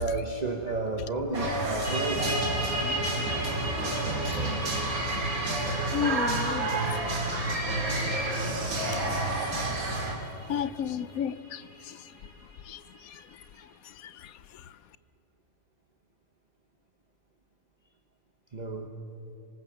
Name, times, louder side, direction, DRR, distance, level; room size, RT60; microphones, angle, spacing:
voice 1, 0.0-2.6 18.5-18.9, right 3 dB, 30° right, 3 dB, 1.2 m, -32 dB
sound 1, 1.3-10.2, right 2 dB, 80° right, 3.1 m, -29 dB
sound 2, 1.8-13.2, right 1 dB, 55° right, 4.5 m, -38 dB
voice 2, 2.8-3.3 4.4-4.5 5.9-7.0 8.3-8.4 10.5-12.1 12.7-13.2 13.6-14.7, left 8 dB, 80° left, 16 dB, 1.1 m, -35 dB
25.0 x 18.5 x 7.2 m, 3.0 s
omnidirectional pair, 1.5 m